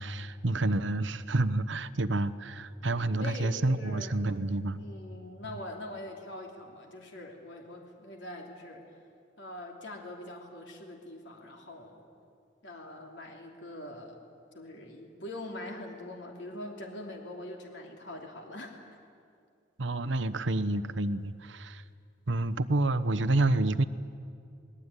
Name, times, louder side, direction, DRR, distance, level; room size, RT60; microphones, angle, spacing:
voice 1, 0.0-4.8 19.8-21.8 22.3-23.8, right 2 dB, 70° right, 12 dB, 1.0 m, -29 dB
voice 2, 3.2-4.1 4.8-8.8 9.4-12.0 12.6-14.2 14.5-18.9, left 1 dB, 65° left, 1 dB, 3.2 m, -43 dB
28.0 x 20.0 x 9.8 m, 2.4 s
head